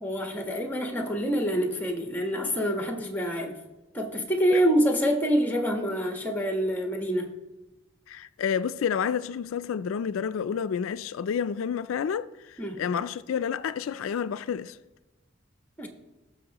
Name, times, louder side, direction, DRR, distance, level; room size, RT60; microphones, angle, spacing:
voice 1, 0.0-3.6 3.9-7.3 12.6-12.8 15.8-15.9, equal, 10° left, 1.2 m, -26 dB
voice 2, 8.1-14.8, left 7 dB, 85° left, 0.3 m, -30 dB
18.0 x 6.4 x 2.9 m
head